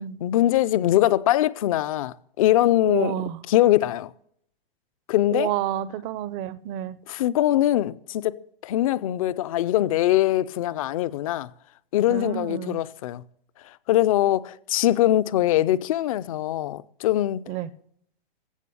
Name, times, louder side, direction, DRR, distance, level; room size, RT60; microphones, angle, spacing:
voice 1, 0.2-3.1 3.5-4.1 5.1-5.5 7.1-11.5 11.9-13.2 13.9-17.4, left 14 dB, 35° left, 0.4 m, -22 dB
voice 2, 2.9-3.4 5.3-7.0 12.1-12.8 17.5-17.7, right 12 dB, 20° right, 0.4 m, -29 dB
15.5 x 6.0 x 8.4 m
hypercardioid pair, 150°, 30 cm